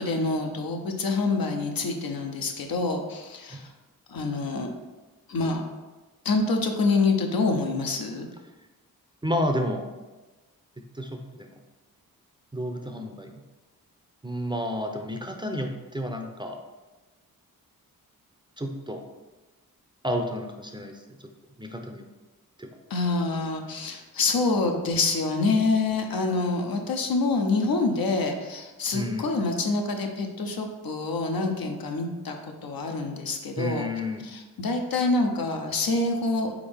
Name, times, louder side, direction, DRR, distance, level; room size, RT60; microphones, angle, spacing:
voice 1, 0.0-3.7 4.1-4.7 5.3-5.6 6.2-8.3 22.9-33.9 34.2-36.6, left 3 dB, 65° left, 3 dB, 0.7 m, -26 dB
voice 2, 9.2-9.9 10.9-11.5 12.5-13.3 14.2-16.6 18.6-19.0 20.0-21.0 21.6-22.0 22.6-22.7 28.9-29.3 33.6-34.2, equal, 10° right, 3 dB, 0.5 m, -30 dB
3.8 x 3.6 x 3.5 m, 1.2 s
cardioid pair, 45°, 38 cm